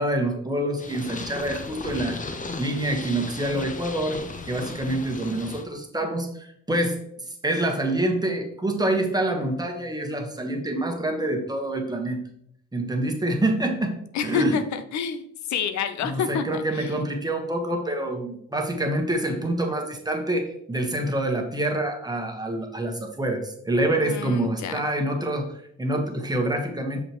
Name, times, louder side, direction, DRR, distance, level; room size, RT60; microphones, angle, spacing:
voice 1, 0.0-7.0 7.3-12.2 12.7-14.0 14.2-14.6 16.0-27.0, right 1 dB, 15° right, 3 dB, 1.2 m, -26 dB
Purr, 0.8-5.6, left 3 dB, 25° left, 0.8 m, -36 dB
voice 2, 14.1-17.0 24.0-24.9, left 7 dB, 70° left, 10 dB, 0.6 m, -29 dB
6.5 x 5.1 x 3.0 m, 0.70 s
cardioid pair, 90°, 30 cm